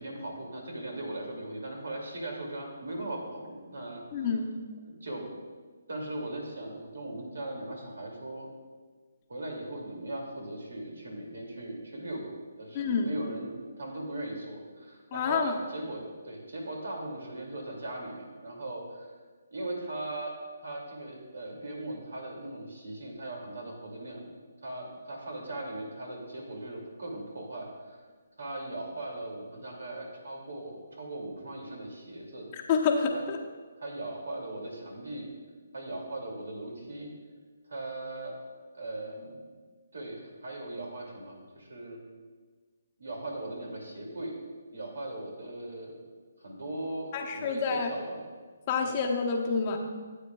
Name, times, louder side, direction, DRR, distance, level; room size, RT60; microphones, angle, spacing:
voice 1, 0.0-4.3 4.9-5.3 5.9-8.5 9.3-13.5 13.8-19.1 19.5-20.3 20.6-24.3 24.6-28.0 28.4-32.5 33.1-33.2 33.8-35.3 35.7-37.1 37.7-38.3 38.7-39.4 39.9-42.0 43.0-44.3 44.7-45.9 46.4-48.2 48.8-49.0, right 1 dB, 75° right, 0 dB, 2.6 m, -39 dB
voice 2, 4.1-4.5 12.7-13.1 15.1-15.5 32.7-33.4 47.1-47.9 48.7-49.8, left 5 dB, 30° left, 1 dB, 0.9 m, -28 dB
14.0 x 8.2 x 2.4 m, 1.5 s
hypercardioid pair, 155°, 0 cm